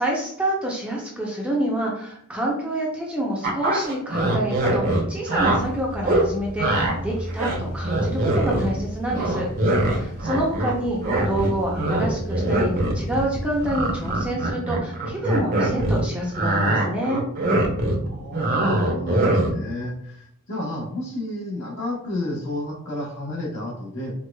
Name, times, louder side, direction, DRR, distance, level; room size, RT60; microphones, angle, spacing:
voice 1, 0.0-11.0 11.3-17.2, right 1 dB, 5° right, -3 dB, 0.6 m, -27 dB
sound 1, 3.4-5.6 6.0-6.3 6.6-6.9 7.3-8.8 9.1-10.8 11.0-16.0 16.3-19.7, right 1 dB, 40° right, 0.7 m, -22 dB
sound 2, 5.3-14.3, equal, 30° left, 1.0 m, -35 dB
voice 2, 18.0-24.1, left 1 dB, 55° left, -4 dB, 1.3 m, -31 dB
4.6 x 2.4 x 2.2 m, 0.70 s
head